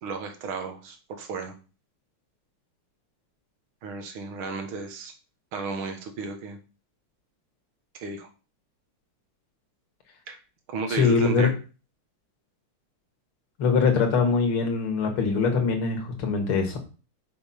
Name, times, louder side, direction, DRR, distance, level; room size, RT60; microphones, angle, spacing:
voice 1, 0.0-1.5 3.8-5.1 5.5-6.6 7.9-8.3 10.3-10.4 10.7-11.5, right 4 dB, 70° right, 6 dB, 2.2 m, -34 dB
voice 2, 10.9-11.5 13.6-16.8, left 5 dB, 75° left, 4 dB, 2.5 m, -23 dB
6.9 x 5.2 x 5.7 m, 0.34 s
omnidirectional pair, 2.4 m